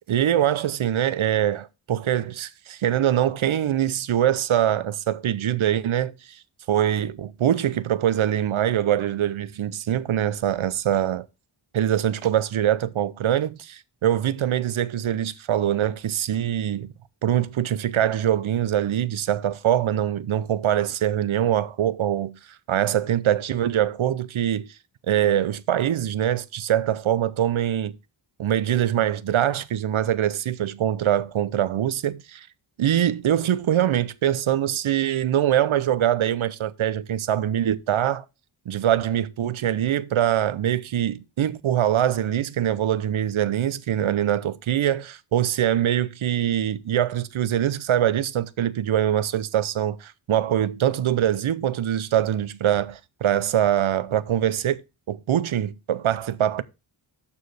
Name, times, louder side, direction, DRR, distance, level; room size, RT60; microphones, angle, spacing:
voice 1, 0.1-6.4 6.7-11.3 11.7-16.9 17.2-22.4 22.7-24.7 25.1-28.0 28.4-32.5 32.8-38.2 38.7-54.8 55.1-56.6, right 11 dB, 75° right, 0.7 m, -23 dB
12.5 x 4.6 x 3.3 m
wide cardioid pair, 105°, 49 cm